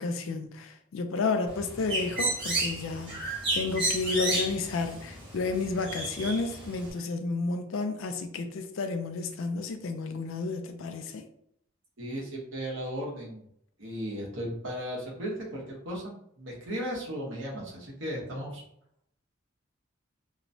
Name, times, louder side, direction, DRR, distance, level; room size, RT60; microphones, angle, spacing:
voice 1, 0.0-11.2, left 3 dB, 80° left, 0.4 m, -31 dB
Bird, 1.5-6.9, right 2 dB, 25° right, 1.2 m, -32 dB
voice 2, 12.0-13.4 13.8-18.6, equal, 70° right, 1.0 m, -36 dB
2.9 x 2.1 x 2.6 m
head